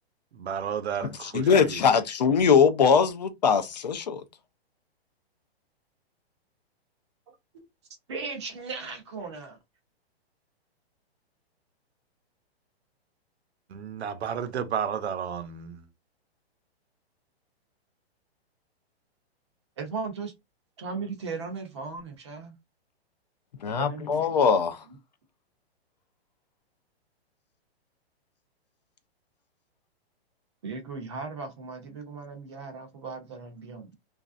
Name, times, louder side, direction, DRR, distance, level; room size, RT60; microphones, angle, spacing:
voice 1, 0.3-1.8 13.7-15.8, right 8 dB, 85° right, 0.8 m, -32 dB
voice 2, 1.0-4.2 23.6-24.8, left 6 dB, 40° left, 0.5 m, -22 dB
voice 3, 8.1-9.6 19.8-20.3 20.8-22.6 23.8-24.2 24.9-25.0 30.6-34.0, right 4 dB, 25° right, 0.6 m, -37 dB
3.1 x 2.5 x 2.4 m
hypercardioid pair, 175°, 32 cm